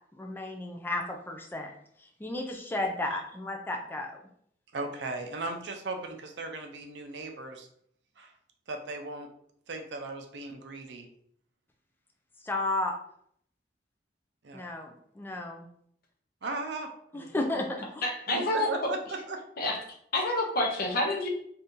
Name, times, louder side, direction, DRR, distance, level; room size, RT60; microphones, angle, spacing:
voice 1, 0.1-1.7 2.0-4.1 12.4-12.9 14.5-15.7 17.1-18.0, left 2 dB, 10° left, 2 dB, 0.3 m, -33 dB
voice 2, 4.7-7.7 8.2-8.3 8.7-9.3 9.7-11.1 14.4-14.6 16.4-17.6 18.3-19.4, right 2 dB, 70° right, 4 dB, 0.5 m, -37 dB
voice 3, 18.0-18.7 19.6-19.8 20.1-21.3, left 1 dB, 55° left, 1 dB, 0.8 m, -28 dB
2.7 x 2.6 x 3.6 m, 0.66 s
head